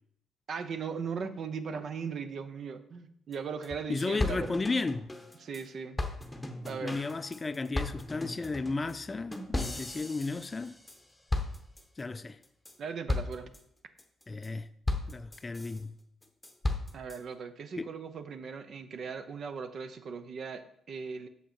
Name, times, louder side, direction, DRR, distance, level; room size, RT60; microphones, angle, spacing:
voice 1, 0.5-4.7 5.4-6.0 6.7-7.0 12.8-13.5 16.9-21.3, right 5 dB, 55° right, 0.7 m, -38 dB
sound 1, 3.3-3.4 3.6-3.7 4.0-5.6 6.0-11.0 11.3-12.0 12.4-12.7 13.1-13.6 14.0-14.5 14.9-15.8 16.2-17.2, left 2 dB, 10° left, 0.9 m, -35 dB
voice 2, 3.9-5.1 6.8-10.8 12.0-12.4 14.3-14.7 15.1-16.0 17.8-17.9, left 3 dB, 25° left, 0.3 m, -34 dB
6.7 x 5.2 x 4.3 m
cardioid pair, 90°, 0 cm